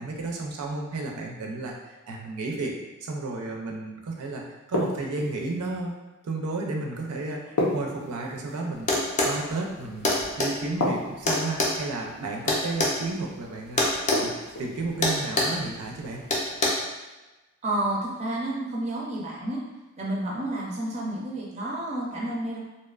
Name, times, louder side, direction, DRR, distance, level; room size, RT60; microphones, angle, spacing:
voice 1, 0.0-2.7 3.0-5.9 6.2-14.3 14.6-16.2, right 3 dB, 90° right, 0 dB, 0.4 m, -33 dB
sound 1, 4.7-5.5 7.6-8.6 10.8-11.6 14.1-14.8, left 1 dB, 80° left, 0.6 m, -28 dB
sound 2, 8.9-9.4 10.0-10.5 11.3-13.0 13.8-14.2 14.5-14.7 15.0-15.6 16.3-16.7, left 2 dB, 30° left, 0.4 m, -24 dB
voice 2, 17.6-19.6 20.0-22.6, right 1 dB, 30° right, -4 dB, 0.4 m, -30 dB
2.7 x 2.1 x 2.3 m, 1.1 s
head